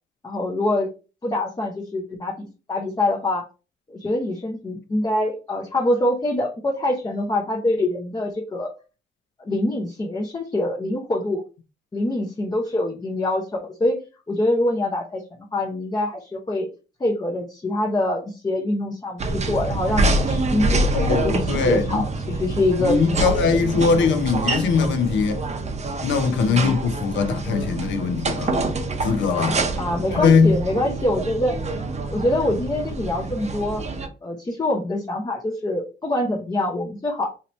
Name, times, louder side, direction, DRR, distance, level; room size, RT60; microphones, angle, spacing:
voice 1, 0.2-0.9 1.2-3.4 3.9-8.7 9.4-11.4 11.9-14.0 14.3-15.2 15.5-16.7 17.0-23.4 23.8-23.9 26.4-26.8 29.8-31.6 32.1-33.8 34.2-37.3, left 1 dB, 20° left, 0.7 m, -25 dB
sound 1, 19.2-34.1, right 2 dB, 35° right, 0.7 m, -26 dB
voice 2, 20.9-22.0 22.8-25.4 26.0-28.6 29.0-29.6 30.2-30.6, left 5 dB, 70° left, 0.7 m, -21 dB
2.9 x 2.8 x 3.1 m
cardioid pair, 90°, 20 cm